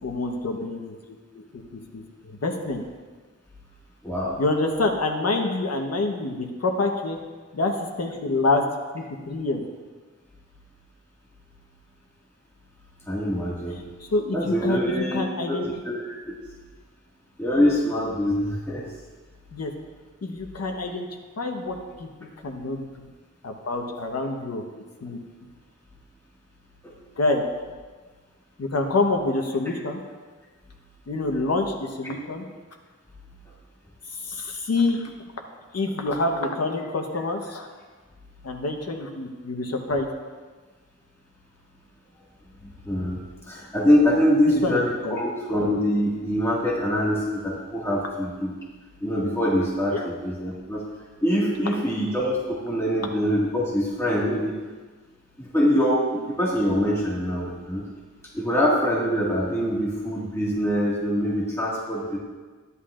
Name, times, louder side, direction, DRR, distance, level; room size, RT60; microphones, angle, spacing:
voice 1, 0.0-1.0 1.3-2.8 4.4-7.2 7.5-8.6 8.9-9.6 13.7-15.7 19.5-19.7 20.2-21.1 21.4-22.1 22.4-23.1 23.4-24.6 25.0-25.2 27.2-27.4 28.6-30.0 31.1-32.4 34.1-35.1 35.7-37.7 38.4-40.1 44.4-45.2 49.9-50.1, left 2 dB, 55° left, 2 dB, 1.1 m, -27 dB
voice 2, 4.0-4.4 13.1-13.8 14.3-16.4 17.4-18.8 26.8-27.0 42.6-48.5 49.0-50.8 51.2-54.6 55.4-57.8 58.3-62.2, equal, 10° left, -6 dB, 1.9 m, -24 dB
14.0 x 11.0 x 2.5 m, 1.4 s
wide cardioid pair, 90°, 29 cm